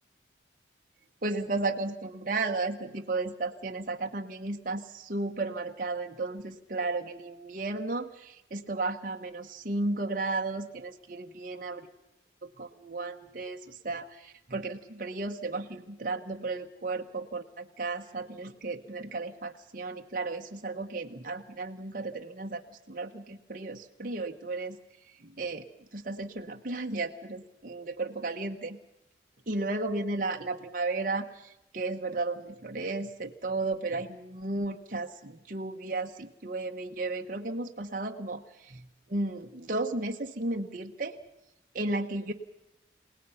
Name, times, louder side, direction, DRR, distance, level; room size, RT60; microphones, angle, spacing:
voice 1, 1.2-11.9 12.6-24.8 25.1-28.8 29.5-41.2 41.7-42.3, right 2 dB, 50° right, 3 dB, 1.1 m, -34 dB
30.0 x 18.5 x 5.7 m, 0.91 s
head